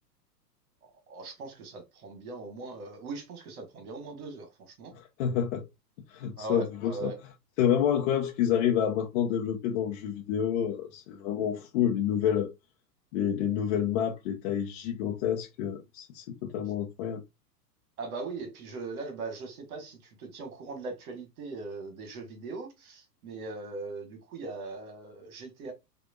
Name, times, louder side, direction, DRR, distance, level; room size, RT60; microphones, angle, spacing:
voice 1, 1.1-4.9 6.4-7.2 18.0-25.7, right 3 dB, 60° right, 1.7 m, -40 dB
voice 2, 4.9-5.7 6.1-7.1 7.6-12.5 13.1-17.2, left 9 dB, 45° left, 0.9 m, -28 dB
6.0 x 2.8 x 2.4 m
figure-of-eight pair, 100°, 49 cm